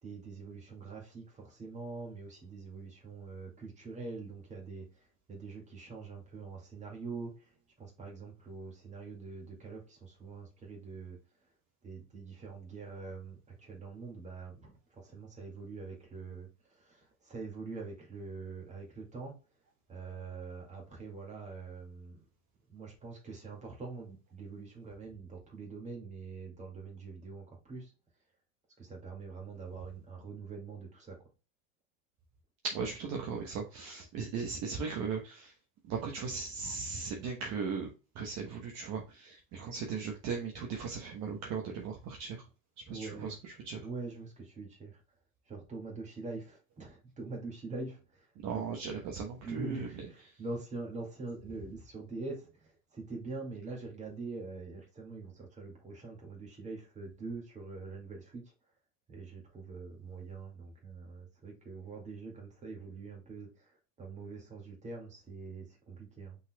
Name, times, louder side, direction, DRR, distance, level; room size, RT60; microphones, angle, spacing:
voice 1, 0.0-11.2 11.8-19.4 19.9-22.3 22.7-27.9 28.8-31.3 39.6-39.7 42.9-43.3 43.7-45.2 45.5-48.6 49.0-49.1 49.4-58.5 59.1-66.4, right 3 dB, 15° right, 0 dB, 2.1 m, -44 dB
voice 2, 32.6-35.5 35.8-42.5 42.9-43.9 48.4-49.9 50.2-50.4, right 5 dB, 40° right, 1 dB, 1.1 m, -37 dB
5.4 x 4.1 x 2.2 m, 0.31 s
supercardioid pair, 125°, 40 cm